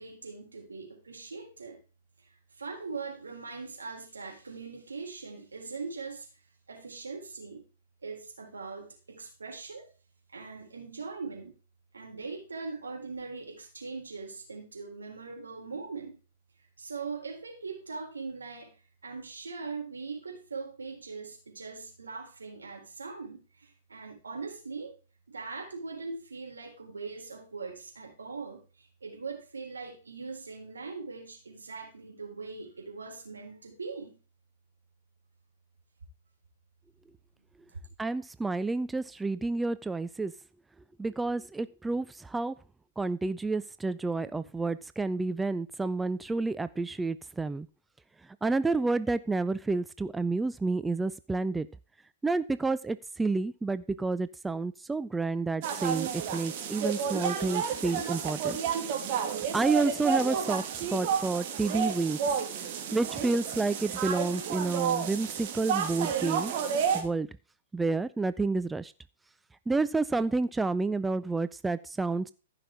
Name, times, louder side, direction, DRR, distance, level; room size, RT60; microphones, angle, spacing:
voice 1, 0.0-1.8 2.2-6.3 6.7-7.6 8.0-9.9 10.3-11.6 11.9-16.2 16.8-18.8 19.0-25.0 25.3-34.2 37.7-37.8, right 4 dB, 80° right, 2 dB, 4.0 m, -41 dB
voice 2, 38.0-40.3 41.0-42.5 43.0-47.7 48.2-51.7 52.2-58.6 59.5-62.2 62.9-66.5 66.9-67.3 67.7-68.9 69.7-72.3, right 3 dB, 10° right, 14 dB, 0.4 m, -30 dB
sound 1, 55.6-67.0, right 7 dB, 45° right, 2.5 m, -31 dB
14.5 x 5.9 x 4.9 m, 0.36 s
figure-of-eight pair, 110°, 0 cm